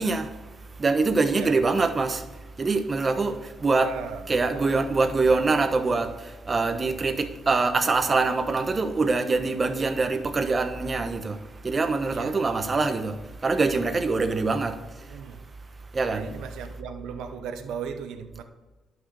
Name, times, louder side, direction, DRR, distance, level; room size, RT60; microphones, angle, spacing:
voice 1, 0.0-3.9 4.3-15.2 15.9-16.3, right 3 dB, 30° right, 7 dB, 1.2 m, -25 dB
voice 2, 1.3-1.9 3.8-4.8 12.1-12.4 13.8-14.0 15.1-15.4 16.1-18.4, right 7 dB, 85° right, 7 dB, 0.9 m, -38 dB
11.0 x 6.3 x 6.7 m, 1.2 s
cardioid pair, 90°, 0 cm